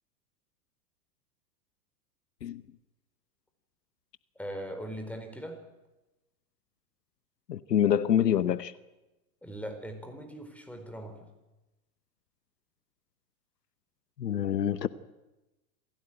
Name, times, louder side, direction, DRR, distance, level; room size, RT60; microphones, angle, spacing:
voice 1, 4.3-5.7 9.4-11.3, equal, 5° left, 4.4 m, -40 dB
voice 2, 7.5-8.7 14.2-14.9, left 9 dB, 85° left, 1.1 m, -26 dB
26.5 x 16.5 x 9.0 m
hypercardioid pair, 105°, 48 cm